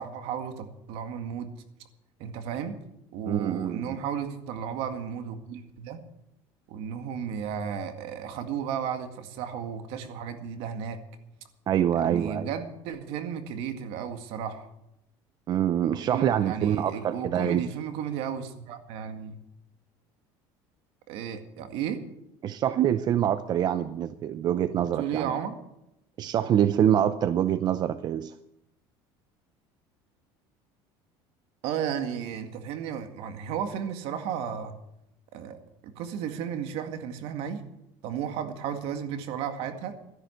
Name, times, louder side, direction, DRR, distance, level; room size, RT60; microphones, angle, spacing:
voice 1, 0.0-1.5 2.2-2.8 3.1-6.0 6.7-11.0 12.0-14.7 16.0-19.4 21.1-22.0 24.8-25.6 31.6-34.7 35.3-37.6 38.0-39.9, right 8 dB, 70° right, 8 dB, 1.9 m, -34 dB
voice 2, 3.3-4.0 11.7-12.5 15.5-17.6 22.4-25.4 26.2-28.3, right 10 dB, 45° right, 13 dB, 0.6 m, -25 dB
13.0 x 11.0 x 7.8 m, 0.83 s
cardioid pair, 120°, 10 cm